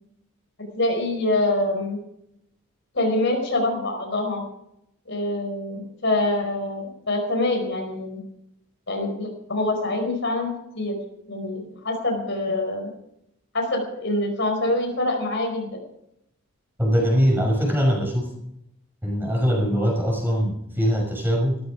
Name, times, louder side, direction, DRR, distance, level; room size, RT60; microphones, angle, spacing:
voice 1, 0.7-2.0 2.9-4.4 5.1-8.2 8.9-10.5 10.7-10.9 11.3-12.9 13.5-15.7, left 2 dB, 55° left, 2 dB, 5.0 m, -25 dB
voice 2, 16.8-18.3 19.0-21.6, equal, 10° right, -2 dB, 6.2 m, -22 dB
16.5 x 14.0 x 5.1 m, 0.78 s
head